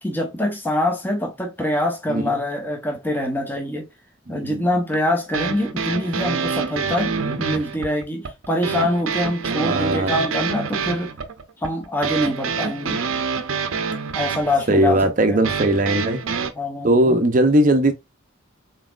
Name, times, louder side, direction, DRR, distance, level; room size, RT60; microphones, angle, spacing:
voice 1, 0.0-3.9 4.3-11.1 11.6-13.0 14.1-15.4 16.5-17.2, left 1 dB, 10° left, 0.9 m, -24 dB
voice 2, 4.3-4.7 7.1-7.4 9.6-10.2 14.7-16.2 16.8-17.9, right 1 dB, 40° right, 0.6 m, -19 dB
sound 1, 4.9-16.5, right 5 dB, 85° right, 0.6 m, -26 dB
4.1 x 3.9 x 2.4 m
head